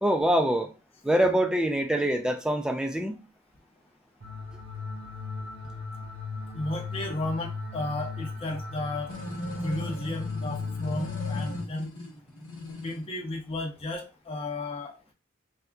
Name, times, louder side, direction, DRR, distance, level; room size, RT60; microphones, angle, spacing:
voice 1, 0.0-0.7 1.0-3.2, right 1 dB, 5° right, 0.4 m, -24 dB
sound 1, 4.2-11.6, left 4 dB, 80° right, 1.0 m, -36 dB
voice 2, 6.5-9.1 9.6-11.9 12.8-15.1, left 2 dB, 30° left, 0.7 m, -34 dB
sound 2, 9.1-13.1, left 1 dB, 65° left, 1.1 m, -38 dB
3.4 x 2.7 x 2.3 m
head